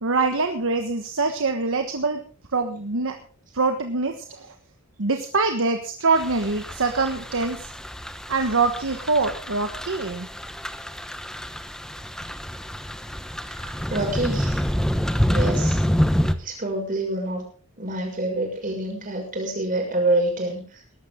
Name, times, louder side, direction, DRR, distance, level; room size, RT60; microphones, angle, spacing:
voice 1, 0.0-2.2 2.5-3.2 3.5-4.2 5.0-7.6 8.3-10.3, right 3 dB, 65° right, 6 dB, 1.3 m, -24 dB
sound 1, 6.2-16.4, equal, 5° left, 1.0 m, -27 dB
voice 2, 13.6-14.6 15.3-15.8 16.4-17.4 17.8-20.6, right 2 dB, 40° right, 2 dB, 6.3 m, -26 dB
20.0 x 12.5 x 3.7 m, 0.41 s
head